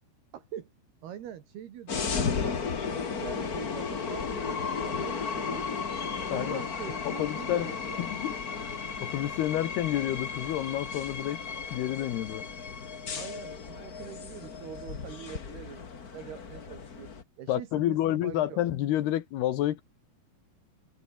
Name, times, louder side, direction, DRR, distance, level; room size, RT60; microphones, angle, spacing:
voice 1, 0.3-0.7 1.0-5.7 6.2-8.0 13.1-18.6, right 10 dB, 70° right, 4.0 m, -44 dB
sound 1, 1.9-17.2, left 5 dB, 40° left, 1.2 m, -34 dB
voice 2, 6.3-6.6 7.0-8.3 9.0-11.4 11.7-12.5 17.5-19.8, left 13 dB, 75° left, 3.5 m, -29 dB
omnidirectional pair, 4.7 m